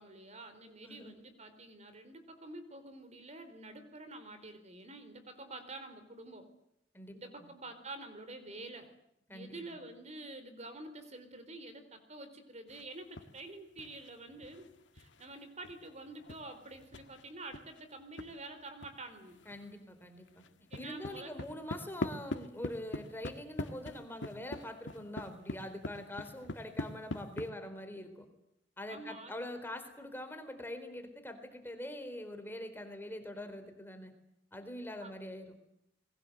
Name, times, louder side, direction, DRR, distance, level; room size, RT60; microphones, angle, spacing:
voice 1, 0.0-6.5 7.1-8.9 9.3-14.7 14.9-19.4 20.7-21.5 28.9-29.3 35.0-35.1, right 2 dB, 40° right, 9 dB, 4.1 m, -48 dB
voice 2, 6.9-7.5 9.3-9.8 19.5-20.4 20.7-28.3 28.8-34.1 34.5-35.5, left 1 dB, 10° left, 7 dB, 3.9 m, -44 dB
sound 1, 12.7-13.5 13.8-18.3 18.8-18.9 19.2-19.8 20.0-27.5, left 1 dB, 85° left, 1.9 m, -43 dB
29.5 x 22.0 x 8.0 m, 0.79 s
head